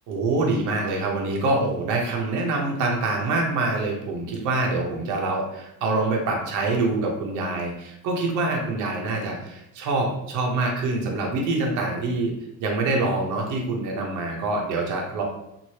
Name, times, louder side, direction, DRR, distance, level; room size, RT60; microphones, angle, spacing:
voice 1, 0.1-12.3 12.6-15.2, right 2 dB, 65° right, 0 dB, 0.8 m, -25 dB
3.1 x 2.6 x 2.8 m, 0.84 s
cardioid pair, 115°, 32 cm